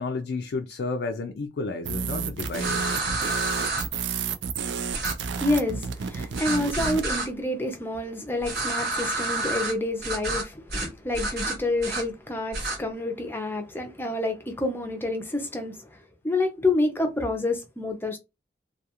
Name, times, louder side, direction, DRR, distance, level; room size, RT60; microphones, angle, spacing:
voice 1, 0.0-2.9, left 3 dB, 65° left, 0.3 m, -31 dB
sound 1, 1.8-7.1, right 6 dB, 85° right, 0.4 m, -31 dB
sound 2, 2.5-3.8 4.9-5.1 6.3-7.3 8.4-9.7 10.0-10.4 10.7-10.9 11.1-12.0 12.5-12.8, right 2 dB, 60° right, 1.1 m, -29 dB
voice 2, 5.3-16.0 16.2-18.2, left 2 dB, 10° left, 0.5 m, -28 dB
2.3 x 2.3 x 2.8 m
head